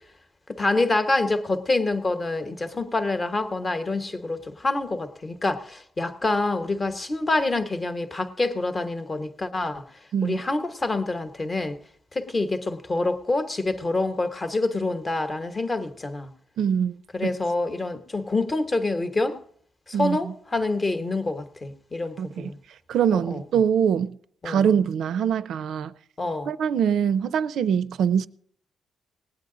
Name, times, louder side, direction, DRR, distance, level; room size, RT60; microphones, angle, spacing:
voice 1, 0.5-9.8 10.2-11.8 12.1-16.3 17.1-19.4 19.9-22.6 23.1-23.4 24.4-24.6 26.2-26.5, left 2 dB, 25° left, 1.0 m, -26 dB
voice 2, 16.6-17.0 17.2-17.3 19.9-20.3 22.2-22.5 22.9-24.2 24.4-25.9 26.5-28.3, right 8 dB, 75° right, 0.5 m, -23 dB
19.0 x 9.5 x 3.8 m
wide cardioid pair, 155°, 0 cm